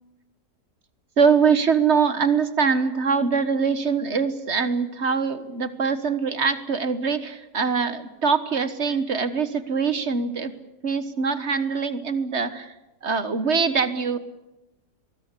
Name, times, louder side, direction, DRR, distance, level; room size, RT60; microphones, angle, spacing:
voice 1, 1.2-10.5 10.8-12.7 13.0-14.2, right 5 dB, 45° right, 12 dB, 1.5 m, -23 dB
23.5 x 21.0 x 8.4 m, 1.0 s
omnidirectional pair, 1.7 m